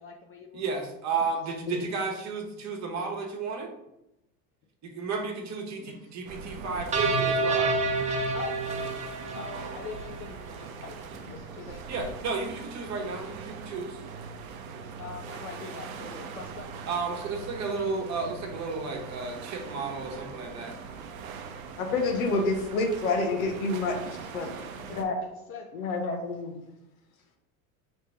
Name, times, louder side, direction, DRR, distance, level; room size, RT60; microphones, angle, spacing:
voice 1, 0.0-0.7 2.8-3.0 8.3-8.7 9.2-12.2 15.0-16.8 24.7-25.7, left 4 dB, 30° left, 3 dB, 0.5 m, -43 dB
voice 2, 0.5-3.7 4.8-7.7 11.9-14.0 16.9-20.8, right 4 dB, 40° right, 2 dB, 1.2 m, -33 dB
sound 1, 6.3-25.0, right 5 dB, 75° right, 0.7 m, -41 dB
sound 2, 6.9-10.2, right 3 dB, 15° right, 0.5 m, -28 dB
voice 3, 21.8-24.0 24.3-24.5 24.9-25.2 25.7-26.5, left 3 dB, 75° left, 3 dB, 1.0 m, -28 dB
3.3 x 2.9 x 4.6 m, 0.87 s
hypercardioid pair, 80°, 42 cm